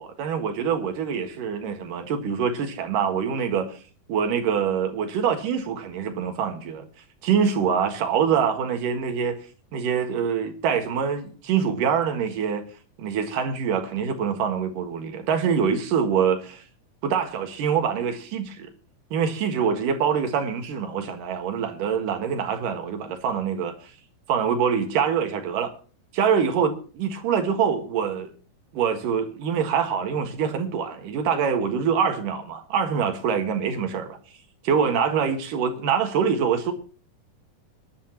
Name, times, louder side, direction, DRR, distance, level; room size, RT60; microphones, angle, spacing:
voice 1, 0.0-3.8 4.1-6.8 7.2-9.4 9.7-12.6 13.0-16.6 17.0-18.7 19.1-23.7 24.3-25.7 26.1-28.3 28.7-34.2 34.6-36.7, right 7 dB, 80° right, 3.2 m, -25 dB
24.5 x 11.0 x 2.9 m
omnidirectional pair, 3.8 m